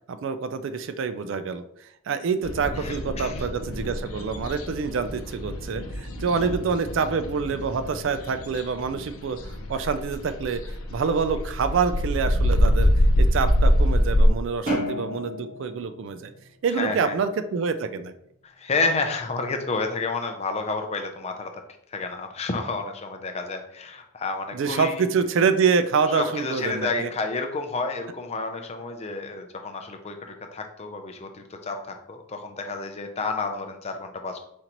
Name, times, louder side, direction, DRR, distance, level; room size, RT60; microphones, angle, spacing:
voice 1, 0.1-12.9 13.2-16.3 16.6-18.1 24.5-27.1, right 5 dB, 60° right, 11 dB, 0.3 m, -26 dB
sound 1, 2.4-14.3, equal, 85° left, 0.6 m, -25 dB
voice 2, 2.8-3.4 6.4-6.5 14.7-14.8 16.8-17.1 18.4-21.5 21.9-25.0 26.1-34.4, left 3 dB, 30° left, 5 dB, 0.5 m, -30 dB
sound 2, 14.7-17.2, equal, 40° right, 1.4 m, -32 dB
4.3 x 3.8 x 2.9 m, 0.75 s
head